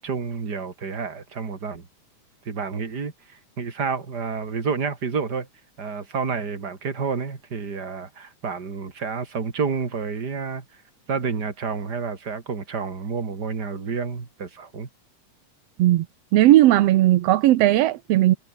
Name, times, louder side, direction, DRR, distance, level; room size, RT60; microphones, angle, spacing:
voice 1, 0.0-1.9 2.4-5.5 5.8-10.6 11.1-14.9, right 5 dB, 30° right, 3.0 m, -29 dB
voice 2, 16.3-18.3, right 14 dB, 75° right, 1.5 m, -16 dB
omnidirectional pair, 3.8 m